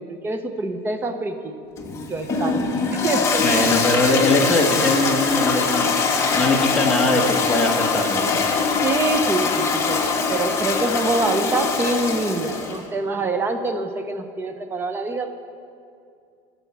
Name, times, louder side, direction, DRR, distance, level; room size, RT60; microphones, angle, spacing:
voice 1, 0.0-1.6 2.1-3.4 8.8-15.3, right 2 dB, 20° right, 7 dB, 0.8 m, -25 dB
Toilet flush, 1.8-12.8, left 4 dB, 25° left, 1.2 m, -22 dB
voice 2, 3.4-8.4, left 2 dB, 5° left, -2 dB, 1.2 m, -21 dB
14.0 x 7.1 x 5.6 m, 2.4 s
cardioid pair, 145°, 12 cm